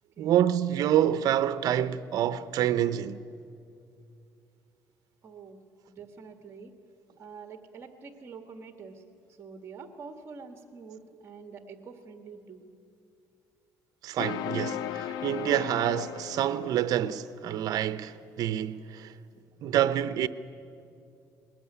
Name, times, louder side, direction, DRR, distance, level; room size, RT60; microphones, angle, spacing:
voice 1, 0.2-3.2 14.0-19.1 19.6-20.3, right 11 dB, 60° right, 0.7 m, -27 dB
voice 2, 5.2-5.6 5.9-6.7 7.2-9.0 9.3-12.7, right 5 dB, 35° right, 1.7 m, -46 dB
sound 1, 14.2-17.2, left 10 dB, 75° left, 0.8 m, -36 dB
20.5 x 19.0 x 9.8 m
cardioid pair, 115°, 7 cm